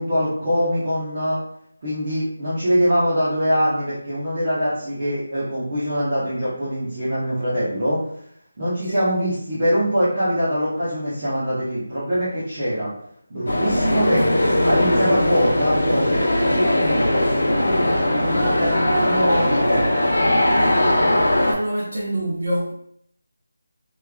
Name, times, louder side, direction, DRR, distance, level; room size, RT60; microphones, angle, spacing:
voice 1, 0.0-1.4 1.8-8.0 8.6-12.9 13.3-17.2 17.6-19.8, equal, 30° right, -12 dB, 0.9 m, -23 dB
sound 1, 13.5-21.5, left 1 dB, 65° left, 1.1 m, -19 dB
voice 2, 21.4-22.7, right 1 dB, 80° right, -8 dB, 1.2 m, -26 dB
3.3 x 3.2 x 2.3 m, 0.69 s
figure-of-eight pair, 175°, 0 cm